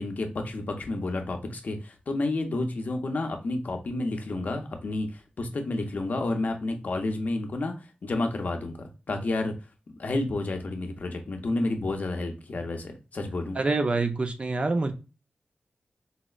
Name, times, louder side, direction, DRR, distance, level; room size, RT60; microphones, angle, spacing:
voice 1, 0.0-9.5 10.0-13.6, left 2 dB, 60° left, 4 dB, 0.5 m, -30 dB
voice 2, 13.6-14.9, right 3 dB, 40° right, 7 dB, 0.4 m, -26 dB
4.0 x 2.0 x 2.3 m, 0.30 s
wide cardioid pair, 120°, 3 cm